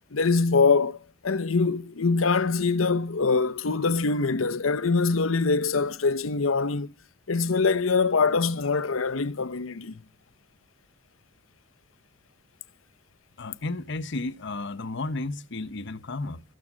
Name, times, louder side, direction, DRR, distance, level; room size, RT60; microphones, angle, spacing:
voice 1, 0.1-6.9 7.3-10.0, left 4 dB, 80° left, 0.8 m, -24 dB
voice 2, 13.4-16.4, left 2 dB, 60° left, 1.0 m, -33 dB
14.5 x 14.5 x 6.2 m
head